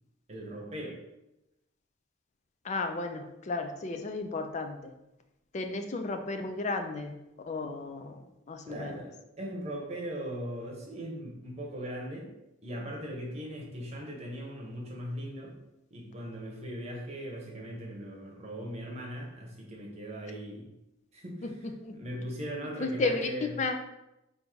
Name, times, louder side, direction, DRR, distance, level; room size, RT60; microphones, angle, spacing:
voice 1, 0.3-0.9 8.7-12.3 12.6-15.5 15.9-20.7 21.1-21.4 21.9-23.5, equal, 30° right, -1 dB, 0.9 m, -39 dB
voice 2, 2.6-4.9 5.5-7.1 7.5-9.0 21.4-21.5 21.8-21.9 22.8-23.3 23.6-23.8, left 3 dB, 35° left, 6 dB, 0.4 m, -33 dB
3.6 x 2.6 x 4.6 m, 0.92 s
head